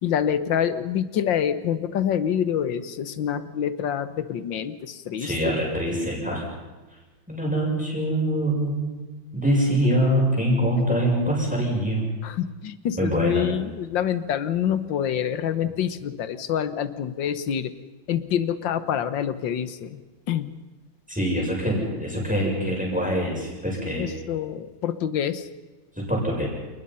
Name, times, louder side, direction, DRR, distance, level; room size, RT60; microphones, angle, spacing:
voice 1, 0.0-5.6 12.2-17.7 18.1-20.0 20.3-20.5 24.0-25.5, left 9 dB, 70° left, 12 dB, 1.8 m, -26 dB
voice 2, 5.2-6.4 7.3-9.1 9.3-12.1 13.0-13.5 21.1-24.0 25.9-26.5, equal, 5° right, -3 dB, 7.2 m, -24 dB
29.5 x 19.5 x 5.7 m, 1.3 s
omnidirectional pair, 2.2 m